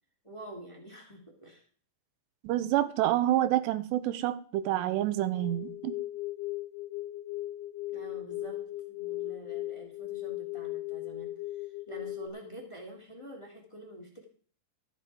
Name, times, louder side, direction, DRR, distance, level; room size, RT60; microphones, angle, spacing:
voice 1, 0.2-1.6 7.9-8.6 8.9-11.3 11.9-14.2, right 1 dB, 10° left, 1.7 m, -47 dB
voice 2, 2.4-5.9, right 13 dB, 85° right, 3.0 m, -28 dB
sound 1, 5.3-12.3, left 17 dB, 90° left, 3.1 m, -37 dB
13.5 x 9.2 x 4.9 m
omnidirectional pair, 4.9 m